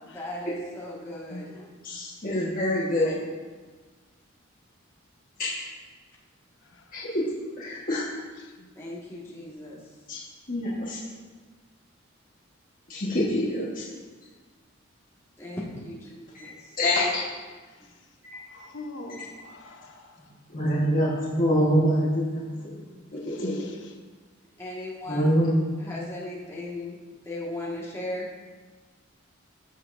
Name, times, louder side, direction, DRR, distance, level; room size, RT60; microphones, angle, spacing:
voice 1, 0.0-1.7 8.8-9.8 15.4-16.7 17.8-17.9 24.6-25.5 25.8-27.0 27.2-28.3, left 1 dB, 15° left, -6 dB, 1.7 m, -37 dB
voice 2, 1.8-3.2 5.4-5.5 6.9-7.2 7.6-8.0 10.1-10.2 10.5-11.0 12.9-13.8 16.3-16.5 16.8-17.2 18.2-18.4 20.5-22.4 23.2-23.7 25.1-25.6, equal, 45° left, -8 dB, 1.4 m, -25 dB
voice 3, 18.5-20.1 23.3-23.9, left 2 dB, 65° left, 3 dB, 1.0 m, -43 dB
15.0 x 6.0 x 2.6 m, 1.4 s
head